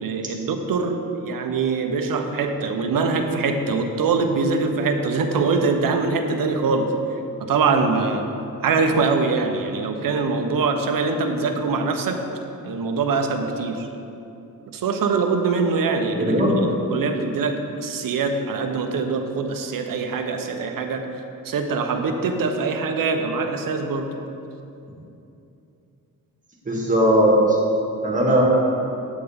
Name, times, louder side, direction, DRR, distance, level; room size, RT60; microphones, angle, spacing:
voice 1, 0.0-6.9 7.4-8.3 8.6-12.2 12.6-13.9 14.7-16.3 16.9-21.1 21.4-24.2, right 4 dB, 65° right, 5 dB, 0.9 m, -23 dB
voice 2, 16.2-16.6 26.7-27.6 28.0-28.4, right 1 dB, 20° right, -3 dB, 1.9 m, -18 dB
9.6 x 8.3 x 3.6 m, 2.8 s
wide cardioid pair, 135°, 36 cm